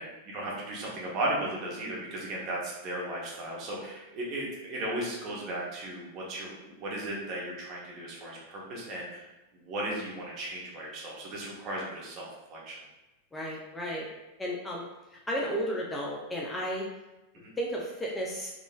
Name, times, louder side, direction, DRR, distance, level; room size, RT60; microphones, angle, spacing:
voice 1, 0.0-9.2 9.5-12.8 17.4-17.5, right 1 dB, 40° right, -4 dB, 0.9 m, -36 dB
voice 2, 13.3-14.1 14.4-16.9 17.6-18.5, equal, 10° left, -3 dB, 0.5 m, -33 dB
3.6 x 2.4 x 2.3 m, 1.0 s
figure-of-eight pair, 90°, 0 cm